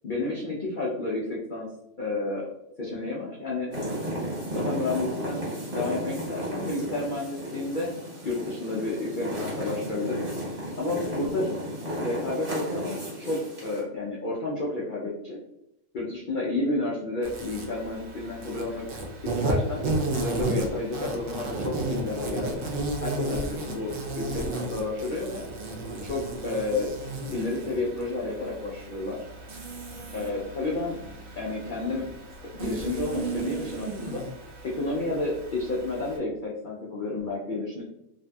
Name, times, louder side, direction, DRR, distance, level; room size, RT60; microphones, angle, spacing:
voice 1, 0.0-1.7 2.0-2.5 2.8-3.7 4.5-5.4 5.7-7.9 8.2-10.2 10.8-11.5 12.0-15.4 15.9-18.9 19.4-19.8 20.2-22.7 23.0-25.4 26.0-26.9 27.3-29.2 30.1-31.0 31.4-32.1 32.6-34.2 34.7-37.8, left 2 dB, 80° left, -4 dB, 0.4 m, -31 dB
sound 1, 3.7-13.8, equal, 40° right, 1.2 m, -34 dB
Insect, 17.2-36.2, right 2 dB, 80° right, 0.4 m, -34 dB
2.6 x 2.6 x 2.2 m, 0.84 s
omnidirectional pair, 1.5 m